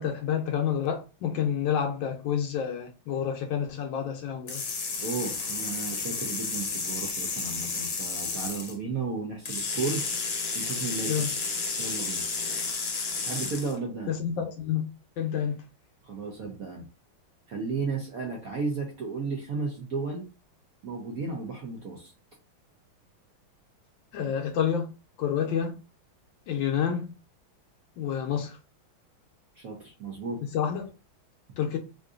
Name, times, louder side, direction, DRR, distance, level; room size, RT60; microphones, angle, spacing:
voice 1, 0.0-4.6 11.1-11.3 14.1-15.6 24.1-24.9 25.2-25.8 26.5-27.1 28.0-28.6 30.5-30.9 31.6-31.8, left 8 dB, 75° left, 1.2 m, -29 dB
sound 1, 4.5-8.7 9.4-13.7, left 4 dB, 55° left, 1.0 m, -32 dB
voice 2, 5.0-10.0 10.5-11.3 11.8-12.2 13.2-14.1 16.0-16.8 17.5-20.3 20.8-22.1 29.6-30.4, right 4 dB, 65° right, 0.8 m, -34 dB
3.7 x 2.5 x 2.4 m
omnidirectional pair, 2.3 m